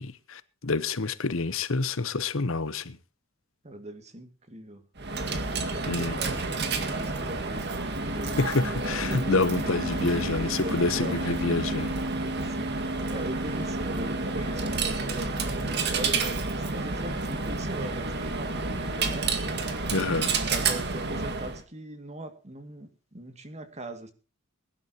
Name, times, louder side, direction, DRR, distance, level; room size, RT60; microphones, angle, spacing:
voice 1, 0.0-3.0 5.9-6.2 8.4-12.0 19.9-20.3, left 3 dB, 65° left, 1.0 m, -28 dB
voice 2, 3.6-4.8 5.6-6.5 7.0-9.4 9.6-11.8 12.5-12.8 13.1-19.4 20.1-24.1, right 1 dB, 30° right, 2.3 m, -40 dB
Coin (dropping), 5.0-21.6, right 3 dB, 50° right, 2.0 m, -30 dB
22.0 x 11.5 x 3.0 m
head